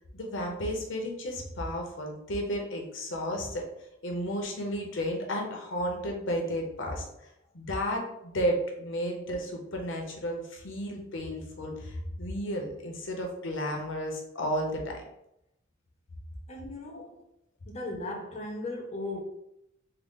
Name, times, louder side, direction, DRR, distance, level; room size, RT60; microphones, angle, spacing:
voice 1, 0.1-3.6 4.0-7.0 7.5-15.0, equal, 65° left, 1 dB, 0.8 m, -33 dB
voice 2, 16.5-17.2 17.7-19.2, left 2 dB, 30° left, -1 dB, 0.6 m, -37 dB
3.8 x 2.1 x 3.6 m, 0.80 s
head